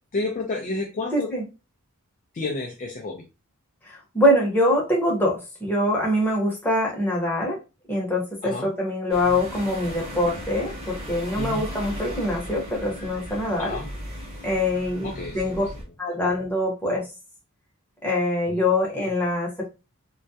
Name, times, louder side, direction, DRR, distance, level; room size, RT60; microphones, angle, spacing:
voice 1, 0.1-1.3 2.3-3.2 8.4-8.7 11.4-11.6 13.6-13.9 15.0-15.6 18.5-18.6, left 3 dB, 35° left, 1 dB, 0.4 m, -30 dB
voice 2, 1.1-1.4 3.9-7.6 7.9-13.8 14.4-15.1 15.3-15.6 16.0-17.1 18.0-19.7, left 1 dB, 10° left, -3 dB, 0.8 m, -24 dB
sound 1, 9.1-15.8, equal, 25° right, 0.8 m, -36 dB
2.2 x 2.1 x 2.7 m, 0.28 s
head